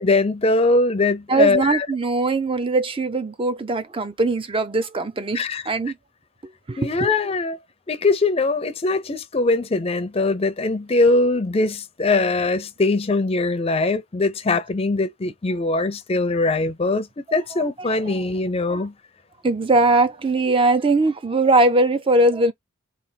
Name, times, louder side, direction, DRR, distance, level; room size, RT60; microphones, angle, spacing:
voice 1, 0.0-1.9 5.3-5.6 6.8-7.6 7.9-18.9, left 3 dB, 30° left, 0.5 m, -21 dB
voice 2, 1.3-5.9 6.7-7.1 17.3-17.4 18.1-18.2 18.7-18.8 19.4-22.5, right 2 dB, 25° right, 0.4 m, -20 dB
3.4 x 2.4 x 4.0 m
head